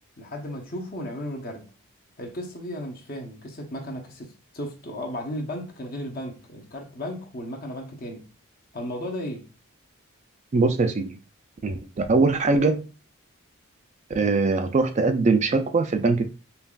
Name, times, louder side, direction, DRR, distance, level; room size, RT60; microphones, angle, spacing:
voice 1, 0.2-1.7 2.2-8.3 8.7-9.5, left 1 dB, 45° left, 0.9 m, -35 dB
voice 2, 10.5-11.2 11.6-12.8 14.1-16.3, right 3 dB, 35° right, 0.3 m, -22 dB
5.5 x 2.3 x 2.4 m
head